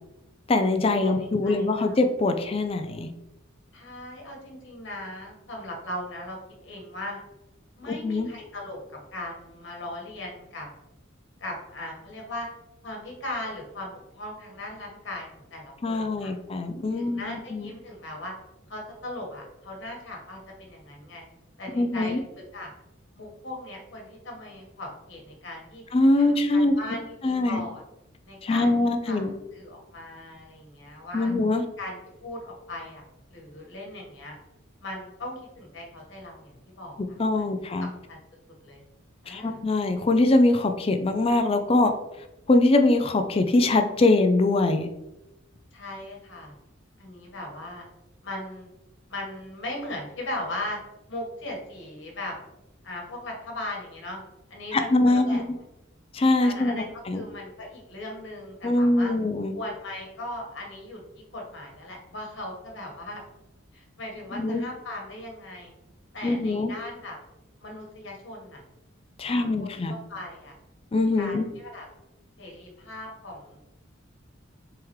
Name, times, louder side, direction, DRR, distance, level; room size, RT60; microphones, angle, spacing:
voice 1, 0.5-3.1 7.9-8.3 15.8-17.7 21.7-22.2 25.9-26.7 27.2-27.6 28.4-29.3 31.1-31.6 37.2-37.9 39.3-41.9 42.5-44.9 54.7-55.4 56.1-57.2 58.6-59.5 64.3-64.6 66.2-66.7 69.2-69.9 70.9-71.5, left 2 dB, 30° left, 7 dB, 0.3 m, -23 dB
voice 2, 1.0-2.0 3.7-6.4 6.6-7.2 7.7-8.8 9.1-10.7 11.4-12.5 12.8-15.3 15.5-16.3 16.9-18.3 18.7-21.2 21.6-22.2 22.5-22.7 23.1-25.8 26.2-27.8 28.2-31.3 31.8-33.0 33.3-34.4 34.8-38.2 38.6-38.8 39.2-39.6 45.7-46.5 47.0-47.9 48.2-48.7 49.1-50.8 51.1-52.3 52.8-54.2 54.5-55.4 56.4-59.1 59.5-61.0 61.3-63.2 63.7-65.7 66.1-67.2 67.6-68.6 69.3-70.5 71.2-71.9 72.4-73.6, left 1 dB, 60° left, 0 dB, 1.4 m, -38 dB
4.7 x 3.5 x 3.1 m, 0.92 s
head